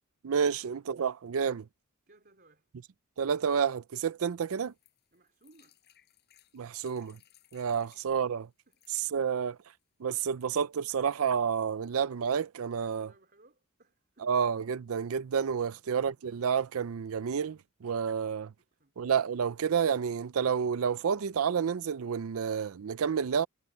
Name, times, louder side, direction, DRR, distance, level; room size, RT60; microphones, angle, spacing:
voice 1, 0.2-1.6 3.2-4.7 6.5-7.2 7.5-8.5 9.1-9.5 10.0-13.1 14.2-18.5 19.0-23.5, right 7 dB, 70° right, 0.4 m, -30 dB
voice 2, 2.1-2.7 5.1-5.8 7.7-8.1 8.7-9.4 12.7-14.4 15.6-15.9 18.6-18.9, right 2 dB, 45° right, 3.7 m, -63 dB
sound 1, 4.5-8.1 8.6-9.1 9.8-9.9 10.1-10.2, left 12 dB, 50° left, 5.0 m, -64 dB
head